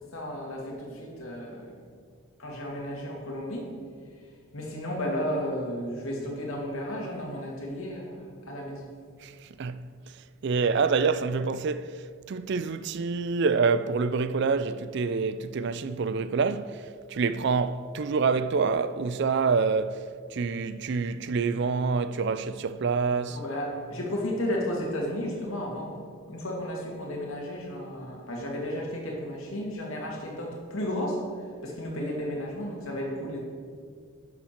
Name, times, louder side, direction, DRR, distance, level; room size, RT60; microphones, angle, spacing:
voice 1, 0.0-1.7 2.4-3.7 4.5-8.9 23.3-31.2 31.6-33.4, left 1 dB, 70° left, 2.1 m, -33 dB
voice 2, 10.4-11.9 12.3-23.4, right 5 dB, 50° right, 0.4 m, -27 dB
11.0 x 7.1 x 4.4 m
head